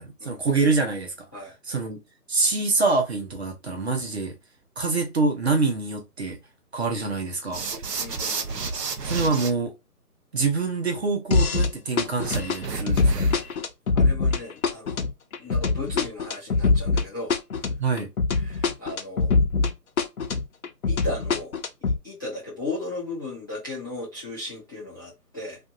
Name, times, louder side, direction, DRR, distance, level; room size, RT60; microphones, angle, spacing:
voice 1, 0.0-1.1 1.7-2.0 2.3-4.4 4.8-6.4 6.7-7.6 9.0-9.7 10.3-13.2 17.8-18.1, right 3 dB, 40° right, 0.9 m, -25 dB
sound 1, 7.5-9.5 12.2-13.5, right 4 dB, 80° right, 0.8 m, -31 dB
voice 2, 8.0-8.6 13.9-15.1 15.4-17.3 18.3-19.3 20.8-21.5 21.8-25.6, left 2 dB, 15° left, 0.7 m, -36 dB
sound 2, 11.3-11.7 12.0-19.7 20.0-22.0, left 4 dB, 60° left, 0.6 m, -23 dB
2.7 x 2.4 x 2.5 m
figure-of-eight pair, 155°, 48 cm